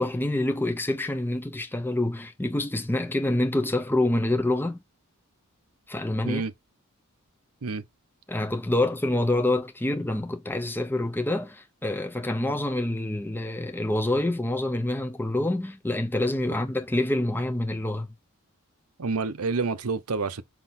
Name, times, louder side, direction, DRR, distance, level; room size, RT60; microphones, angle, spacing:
voice 1, 0.0-4.8 5.9-6.4 8.3-18.1, left 1 dB, 10° left, 0.6 m, -27 dB
voice 2, 19.0-20.4, right 4 dB, 80° right, 0.8 m, -28 dB
6.0 x 5.5 x 4.2 m
head